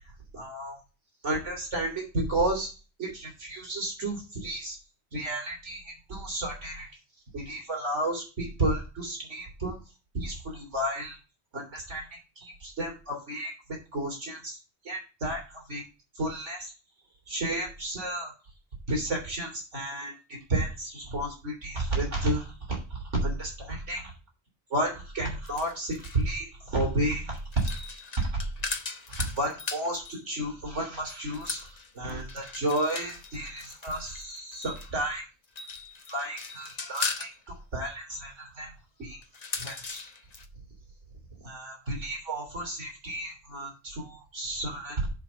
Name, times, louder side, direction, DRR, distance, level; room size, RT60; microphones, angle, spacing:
voice 1, 0.3-0.8 1.2-2.7 3.0-4.8 5.1-6.9 7.3-9.8 10.1-11.2 11.5-13.5 13.9-14.6 14.8-15.8 16.2-16.7 17.3-18.3 18.9-24.1 24.7-27.7 28.2-28.4 29.1-35.3 36.1-38.7 39.0-39.2 39.6-40.0 41.4-45.1, right 1 dB, 75° right, 1 dB, 3.7 m, -32 dB
sound 1, 25.4-26.3 27.3-30.2 31.0-34.9 35.4-37.4 39.2-40.4, left 4 dB, 35° left, 1.0 m, -38 dB
7.2 x 5.5 x 6.1 m, 0.31 s
omnidirectional pair, 1.2 m